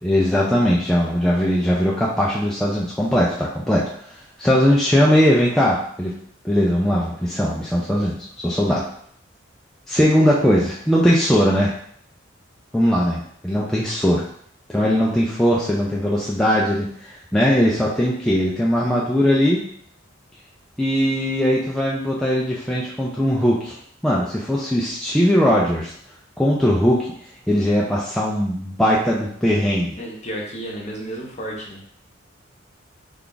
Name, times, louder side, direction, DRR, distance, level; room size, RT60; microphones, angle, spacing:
voice 1, 0.0-6.1 6.4-8.8 9.9-11.8 12.7-14.2 14.7-19.6 20.8-23.8 24.0-25.9 26.4-27.1 27.5-30.0, equal, ahead, -5 dB, 0.3 m, -19 dB
voice 2, 30.0-31.8, right 1 dB, 35° left, -2 dB, 0.9 m, -32 dB
3.4 x 2.4 x 3.8 m, 0.64 s
head